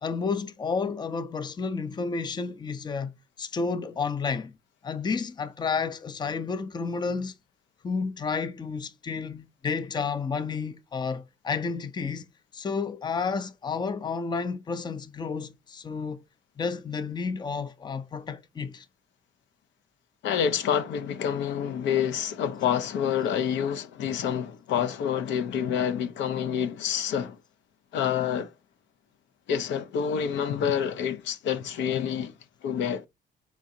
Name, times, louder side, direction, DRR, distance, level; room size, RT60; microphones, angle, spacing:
voice 1, 0.0-4.5 4.8-7.3 7.8-16.2 16.6-18.9, left 5 dB, 25° left, 0.5 m, -31 dB
voice 2, 20.2-27.4 27.9-28.5 29.5-32.3 32.6-33.1, left 8 dB, 80° left, 0.7 m, -27 dB
4.8 x 3.7 x 2.7 m
cardioid pair, 105°, 19 cm